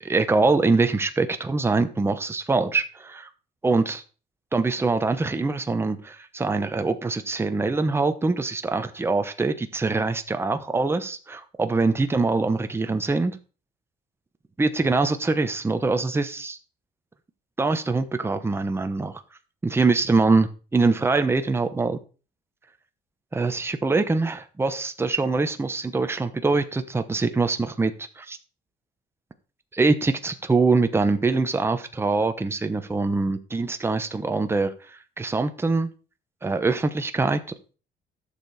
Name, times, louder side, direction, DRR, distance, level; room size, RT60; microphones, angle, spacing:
voice 1, 0.0-3.3 3.6-4.0 4.5-13.4 14.6-16.6 17.6-19.2 19.6-22.0 23.3-28.4 29.7-35.9 36.4-37.4, right 3 dB, 15° right, 8 dB, 1.0 m, -24 dB
11.5 x 6.8 x 4.2 m, 0.36 s
cardioid pair, 110°, 17 cm